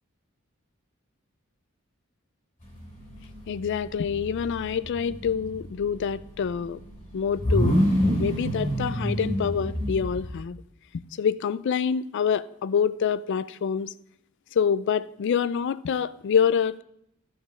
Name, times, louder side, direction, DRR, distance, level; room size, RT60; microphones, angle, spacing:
sound 1, 2.6-10.4, equal, 45° left, 3.5 m, -28 dB
voice 1, 3.5-6.8 7.1-7.8 8.2-10.6 11.2-13.9 14.6-16.8, left 7 dB, 60° left, 0.3 m, -26 dB
12.5 x 5.0 x 5.3 m
head